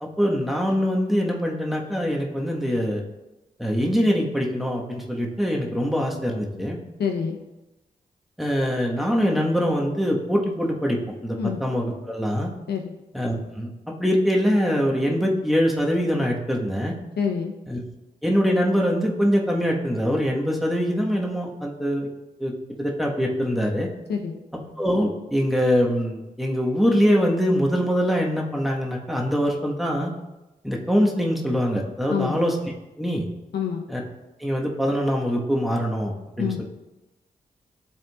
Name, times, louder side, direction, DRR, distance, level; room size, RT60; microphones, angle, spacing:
voice 1, 0.0-3.0 3.6-6.8 8.4-12.5 13.1-16.9 17.7-17.8 18.2-22.1 22.4-22.5 22.8-23.9 24.5-30.1 30.6-32.6 33.0-33.2 33.9-34.0 34.4-36.6, equal, ahead, -2 dB, 1.2 m, -23 dB
voice 2, 7.0-7.4 11.4-11.6 12.7-12.9 17.2-17.5 24.1-24.4 32.1-32.4 33.5-33.8 36.4-36.6, left 7 dB, 75° left, 2 dB, 0.7 m, -26 dB
11.0 x 3.7 x 2.3 m, 1.0 s
cardioid pair, 50°, 17 cm